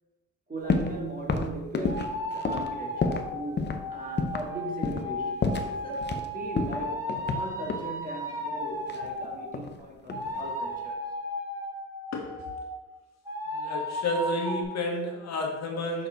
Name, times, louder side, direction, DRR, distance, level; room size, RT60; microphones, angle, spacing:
voice 1, 0.5-11.0, right 1 dB, 30° right, -1 dB, 1.8 m, -38 dB
sound 1, 0.7-1.0 1.3-3.3 3.6-3.8 4.2-4.5 4.8-5.1 5.4-6.3 6.6-7.9 8.9-9.8 10.1-10.5, left 4 dB, 35° left, 0.7 m, -30 dB
sound 2, 1.9-9.5 10.1-12.8 13.2-14.6, equal, 10° right, 1.5 m, -35 dB
voice 2, 13.5-16.1, left 1 dB, 60° left, 1 dB, 1.4 m, -31 dB
6.1 x 4.6 x 3.9 m, 1.1 s
cardioid pair, 90°, 30 cm